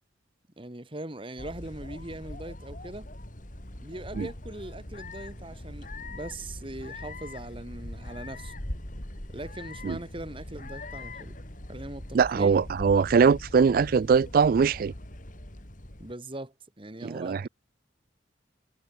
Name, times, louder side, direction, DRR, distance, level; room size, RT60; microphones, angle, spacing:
voice 1, 0.6-3.1 3.8-8.5 9.3-11.4 11.7-12.7 16.0-17.5, right 1 dB, 25° right, 1.7 m, -41 dB
sound 1, 1.4-16.1, left 1 dB, 40° left, 3.5 m, -41 dB
voice 2, 12.1-14.9 17.0-17.5, right 5 dB, 50° right, 0.3 m, -22 dB
head